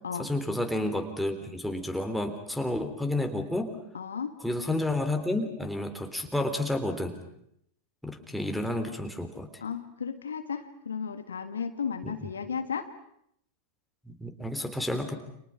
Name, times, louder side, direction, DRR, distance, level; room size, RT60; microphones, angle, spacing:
voice 1, 0.2-3.8 4.4-7.2 8.0-9.5 14.1-15.1, left 1 dB, ahead, 4 dB, 3.7 m, -30 dB
voice 2, 3.9-4.3 9.6-12.9, left 6 dB, 70° left, 9 dB, 1.8 m, -34 dB
30.0 x 28.0 x 6.0 m, 0.74 s
figure-of-eight pair, 90°, 0 cm